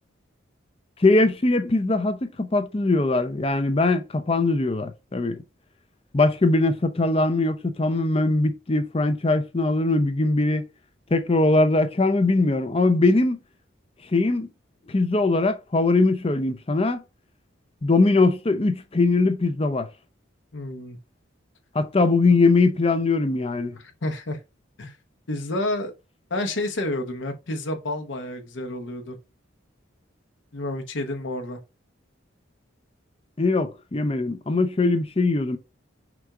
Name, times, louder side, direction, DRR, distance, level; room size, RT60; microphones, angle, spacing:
voice 1, 1.0-5.4 6.1-10.7 11.1-13.4 14.1-14.5 14.9-17.0 17.8-19.9 21.7-23.8 33.4-35.6, left 2 dB, 30° left, 0.5 m, -21 dB
voice 2, 20.5-21.0 23.8-24.4 24.8-25.0 25.3-25.9 26.3-29.2 30.5-31.6, left 1 dB, 70° left, 0.9 m, -30 dB
6.0 x 2.4 x 3.7 m
head